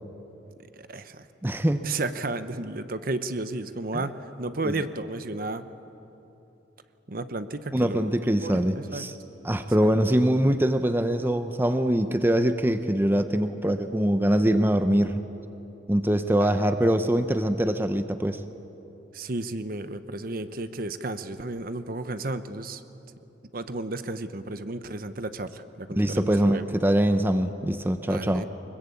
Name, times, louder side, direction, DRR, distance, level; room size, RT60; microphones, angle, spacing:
voice 1, 0.8-1.3 1.8-5.6 7.1-8.1 8.4-9.1 16.4-16.6 19.1-22.8 23.5-26.7 28.1-28.4, right 2 dB, 50° right, 11 dB, 1.0 m, -33 dB
voice 2, 1.4-1.8 3.9-4.0 4.6-4.7 7.7-9.1 9.4-15.1 15.9-18.4 26.0-28.4, right 1 dB, 10° right, 9 dB, 0.7 m, -23 dB
24.5 x 22.0 x 8.5 m, 3.0 s
head